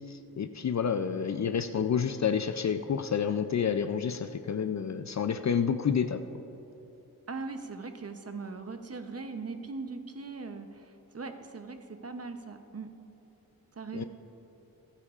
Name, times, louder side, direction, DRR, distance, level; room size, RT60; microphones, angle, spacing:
voice 1, 0.1-6.2 13.9-14.0, left 7 dB, 50° left, 10 dB, 0.5 m, -29 dB
voice 2, 7.3-12.9 13.8-14.0, right 4 dB, 40° right, 7 dB, 0.8 m, -40 dB
26.0 x 9.9 x 2.5 m, 3.0 s
wide cardioid pair, 100°, 36 cm